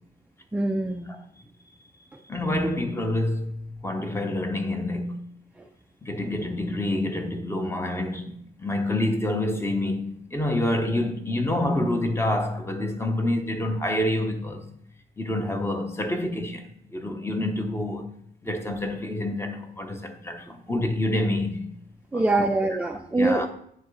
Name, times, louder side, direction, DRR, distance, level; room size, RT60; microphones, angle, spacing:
voice 1, 0.5-1.2 5.6-5.7 22.1-23.5, right 2 dB, 5° right, 0.4 m, -24 dB
voice 2, 2.3-5.2 6.0-14.7 15.2-18.1 18.4-21.7 22.1-22.4 23.2-23.5, left 1 dB, 10° left, 0.8 m, -27 dB
9.3 x 3.7 x 3.2 m
cardioid pair, 90°, 20 cm